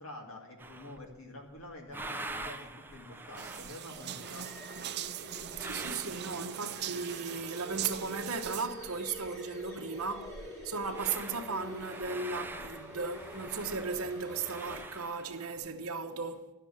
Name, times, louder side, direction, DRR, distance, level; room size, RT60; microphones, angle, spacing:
voice 1, 0.0-4.5, left 1 dB, 65° left, 2.2 m, -48 dB
sound 1, 0.6-1.2 1.6-9.4 9.6-9.7 10.0-15.7, right 2 dB, 10° right, 0.6 m, -46 dB
sound 2, 3.4-8.7, right 11 dB, 50° right, 0.5 m, -41 dB
sound 3, 3.9-14.9, left 1 dB, 15° left, 2.0 m, -47 dB
voice 2, 5.6-10.4 10.6-16.5, right 4 dB, 75° right, 1.0 m, -36 dB
12.5 x 6.7 x 8.5 m
head